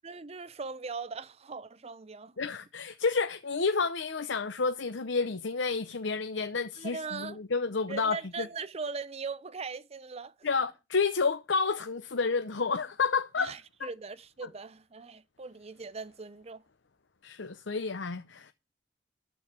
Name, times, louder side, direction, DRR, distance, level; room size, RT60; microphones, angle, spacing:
voice 1, 0.0-2.4 6.8-7.4 7.9-10.5 13.4-16.6, right 4 dB, 35° right, 0.6 m, -40 dB
voice 2, 2.4-8.5 10.4-13.9 17.2-18.5, left 4 dB, 75° left, 0.8 m, -30 dB
14.0 x 4.8 x 8.8 m
head